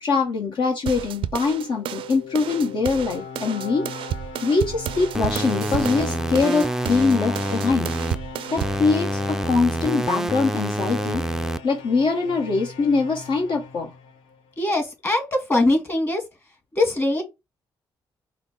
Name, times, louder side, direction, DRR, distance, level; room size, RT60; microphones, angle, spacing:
voice 1, 0.0-3.9 4.4-7.9 8.5-11.2 11.6-13.9, left 4 dB, 65° left, 1.0 m, -23 dB
sound 1, 0.9-8.8, right 11 dB, 80° right, 0.4 m, -32 dB
sound 2, 1.4-14.5, left 4 dB, 90° left, 0.7 m, -38 dB
sound 3, 5.1-8.1 8.6-11.6, right 1 dB, 5° right, 0.4 m, -27 dB
voice 2, 14.6-16.2 16.8-17.2, left 2 dB, 25° left, 1.9 m, -21 dB
5.0 x 2.0 x 4.5 m
supercardioid pair, 60°, 9 cm